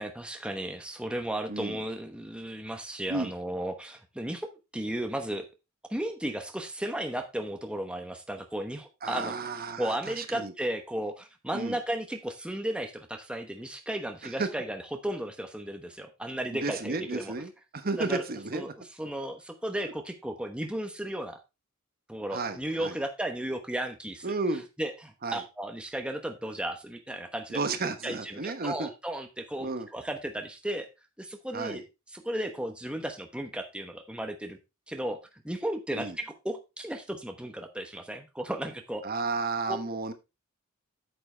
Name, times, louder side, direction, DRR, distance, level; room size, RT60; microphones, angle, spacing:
voice 1, 0.0-5.5 5.9-9.3 9.8-17.3 18.0-18.2 18.5-18.7 19.0-21.4 22.1-24.3 24.8-27.6 28.0-30.9 31.2-31.8 32.1-34.6 34.9-39.0 39.7-39.8, right 1 dB, 5° right, 5 dB, 1.0 m, -34 dB
voice 2, 1.5-1.8 3.1-3.3 9.0-10.5 11.5-11.8 14.2-14.5 16.5-18.7 22.3-23.0 24.2-24.7 25.2-25.4 27.5-28.9 29.6-29.9 31.5-31.8 35.9-36.2 39.0-40.1, right 3 dB, 45° right, 9 dB, 1.1 m, -33 dB
9.0 x 7.7 x 3.3 m, 0.25 s
head